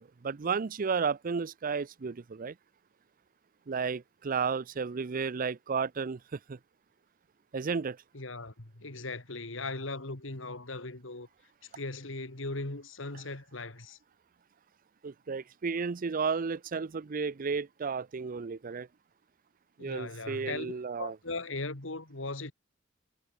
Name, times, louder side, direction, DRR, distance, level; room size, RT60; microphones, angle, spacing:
voice 1, 0.0-2.5 3.7-6.2 6.5-6.6 7.5-8.0 15.0-18.9 19.8-21.1, right 5 dB, 45° right, 0.5 m, -33 dB
voice 2, 8.1-11.3 11.7-14.0 19.8-22.5, left 3 dB, 70° left, 2.5 m, -38 dB
head